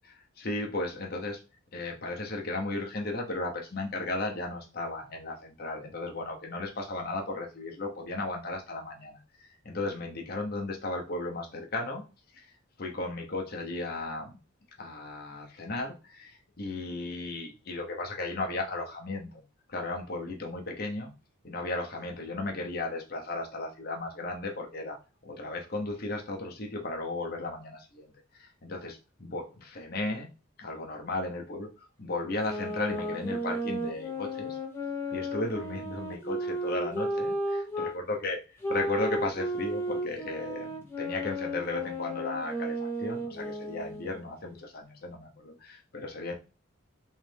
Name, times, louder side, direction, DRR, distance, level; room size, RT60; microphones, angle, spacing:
voice 1, 0.4-1.4 1.7-12.0 12.3-12.5 12.8-14.4 14.8-19.4 19.7-21.1 21.4-25.0 25.2-30.3 30.6-31.7 32.0-34.6 35.1-38.4 38.7-46.3, left 2 dB, 45° left, 1 dB, 0.8 m, -35 dB
sound 1, 32.4-38.0 38.6-44.2, equal, 10° left, 0.6 m, -34 dB
3.2 x 3.1 x 3.3 m, 0.32 s
head